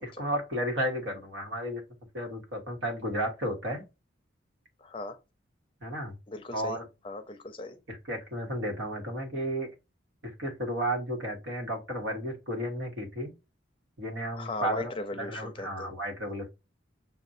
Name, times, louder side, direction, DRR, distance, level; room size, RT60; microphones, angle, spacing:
voice 1, 0.0-1.8 2.1-3.8 5.8-6.2 6.5-6.9 7.9-9.7 10.2-13.3 14.0-14.9 15.2-16.5, right 1 dB, 80° right, 1.4 m, -33 dB
voice 2, 4.8-5.2 6.3-6.8 7.0-7.8 14.3-15.9, left 2 dB, 30° left, 0.5 m, -38 dB
5.9 x 2.3 x 2.6 m
head